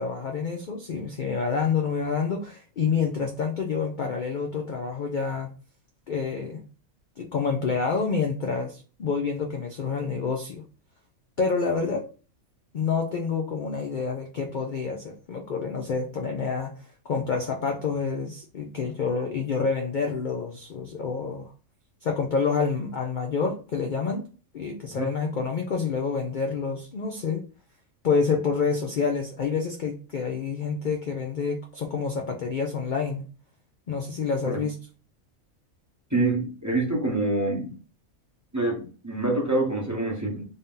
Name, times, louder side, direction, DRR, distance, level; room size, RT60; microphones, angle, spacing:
voice 1, 0.0-5.5 6.1-6.6 7.2-10.6 11.4-12.0 12.7-16.7 17.1-21.5 22.0-24.2 24.5-27.4 28.0-33.2 33.9-34.8, left 5 dB, 65° left, 2 dB, 0.4 m, -28 dB
voice 2, 36.1-37.7 38.5-40.5, right 2 dB, 15° right, -1 dB, 0.8 m, -26 dB
3.5 x 2.7 x 3.6 m, 0.36 s
omnidirectional pair, 1.5 m